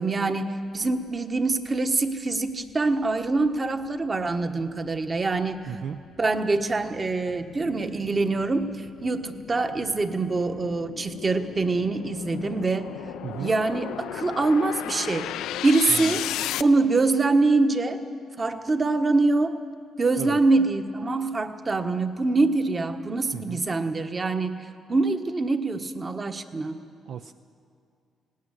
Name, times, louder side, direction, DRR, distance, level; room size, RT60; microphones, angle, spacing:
voice 1, 0.0-5.6 6.2-12.9 13.4-15.3 15.6-16.2 16.6-18.0 18.4-19.6 20.0-26.8, right 3 dB, 30° right, 8 dB, 1.2 m, -24 dB
sound 1, 1.9-2.0 2.5-16.6, left 12 dB, 90° left, 0.4 m, -36 dB
voice 2, 5.7-6.0 13.2-13.5 15.9-16.2 20.2-20.4 23.3-23.6 27.1-27.3, right 8 dB, 65° right, 8 dB, 0.6 m, -35 dB
17.5 x 17.5 x 9.8 m, 2.3 s
cardioid pair, 90°, 0 cm